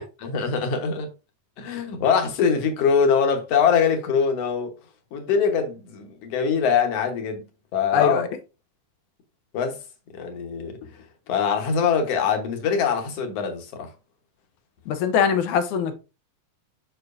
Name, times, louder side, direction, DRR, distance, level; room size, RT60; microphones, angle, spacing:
voice 1, 0.2-1.1 1.6-4.7 5.1-7.4 7.7-8.2 9.5-9.8 10.1-10.7 11.3-13.9, left 6 dB, 60° left, 2.0 m, -23 dB
voice 2, 7.9-8.3 14.9-16.0, left 7 dB, 75° left, 2.1 m, -22 dB
6.8 x 6.0 x 2.6 m
omnidirectional pair, 3.7 m